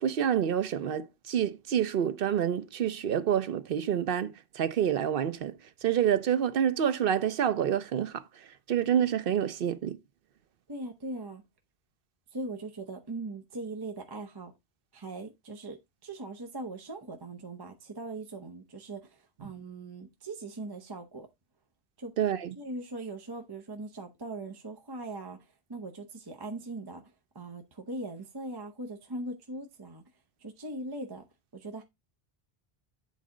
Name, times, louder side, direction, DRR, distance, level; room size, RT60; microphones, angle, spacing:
voice 1, 0.0-8.2 8.7-10.0 19.4-19.5 22.2-22.5, right 9 dB, 65° right, 0.8 m, -28 dB
voice 2, 10.7-11.4 12.3-14.5 14.9-21.3 22.0-22.1 22.6-27.0 27.3-30.0 30.4-31.2 31.5-31.8, right 2 dB, 25° right, 0.7 m, -40 dB
8.3 x 4.1 x 3.7 m
omnidirectional pair, 1.0 m